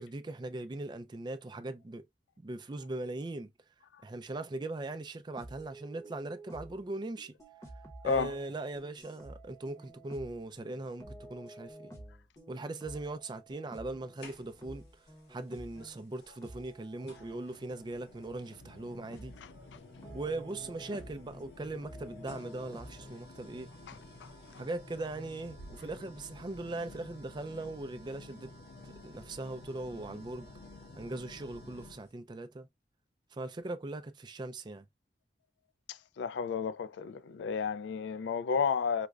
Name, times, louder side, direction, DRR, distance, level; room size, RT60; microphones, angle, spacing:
voice 1, 0.0-2.1 2.4-3.5 4.0-7.3 8.0-11.9 12.5-15.0 15.3-19.3 20.1-23.7 24.6-28.5 28.8-30.5 31.0-32.7 33.3-34.9, right 2 dB, 25° right, 0.4 m, -40 dB
sound 1, 5.4-6.9 7.2-16.1 16.4-17.5 18.5-18.6 19.1-19.5 19.8-21.5 21.8-23.2, right 1 dB, 20° left, 0.8 m, -51 dB
sound 2, 14.2-14.8 16.2-16.3 17.1-32.1, left 2 dB, 70° left, 1.2 m, -51 dB
voice 2, 36.2-39.1, left 6 dB, 85° left, 0.3 m, -31 dB
4.8 x 2.2 x 2.3 m
head